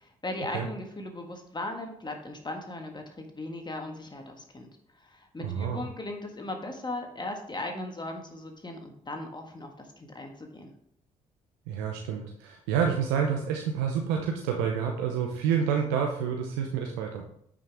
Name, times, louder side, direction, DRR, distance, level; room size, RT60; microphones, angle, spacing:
voice 1, 0.0-10.7, left 2 dB, 25° left, 3 dB, 1.7 m, -38 dB
voice 2, 5.4-5.8 11.7-17.2, right 7 dB, 80° right, 2 dB, 0.8 m, -28 dB
8.9 x 6.2 x 3.6 m, 0.69 s
hypercardioid pair, 50°, 17 cm